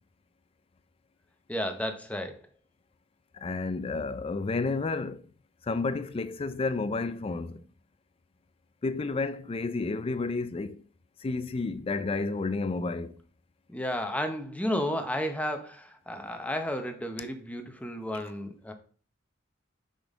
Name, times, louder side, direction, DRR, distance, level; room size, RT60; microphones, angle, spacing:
voice 1, 1.5-2.4 13.7-18.7, equal, 5° left, 0.8 m, -32 dB
voice 2, 3.3-5.3 5.6-7.6 8.8-10.8 11.2-13.1, left 3 dB, 30° left, 0.4 m, -31 dB
6.0 x 5.2 x 3.6 m
head